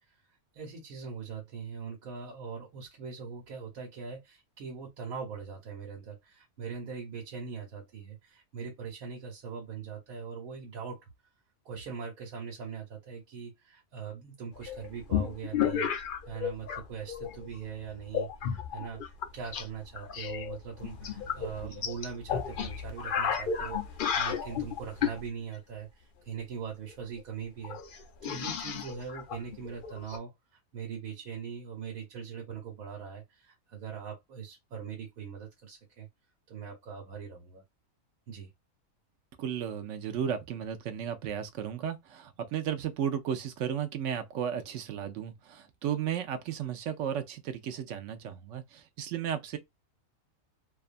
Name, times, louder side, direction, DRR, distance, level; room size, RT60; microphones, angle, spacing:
voice 1, 0.0-11.1 11.6-15.9 16.2-36.1 36.5-37.6 38.3-38.5, right 6 dB, 90° right, 1.3 m, -41 dB
sound 1, 14.6-16.8 17.1-17.6 18.1-19.6 19.9-25.2 26.9-27.0 27.2-27.3 27.6-30.2, left 8 dB, 75° left, 0.4 m, -33 dB
voice 2, 39.4-49.6, right 9 dB, 70° right, 0.8 m, -34 dB
2.6 x 2.4 x 2.4 m
omnidirectional pair, 1.4 m